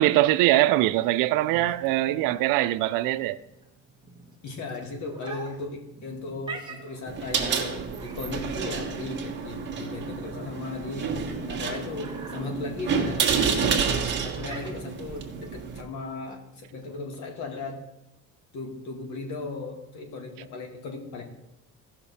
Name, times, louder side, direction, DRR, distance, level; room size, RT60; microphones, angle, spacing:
voice 1, 0.0-3.4, right 16 dB, 75° right, 0.6 m, -22 dB
sound 1, 1.4-17.3, right 4 dB, 15° right, 1.2 m, -46 dB
voice 2, 4.4-13.9 14.2-17.8 18.5-21.2, left 3 dB, 55° left, 2.0 m, -36 dB
sound 2, 7.1-15.8, right 6 dB, 30° right, 1.4 m, -29 dB
16.0 x 5.8 x 4.2 m
cardioid pair, 155°, 33 cm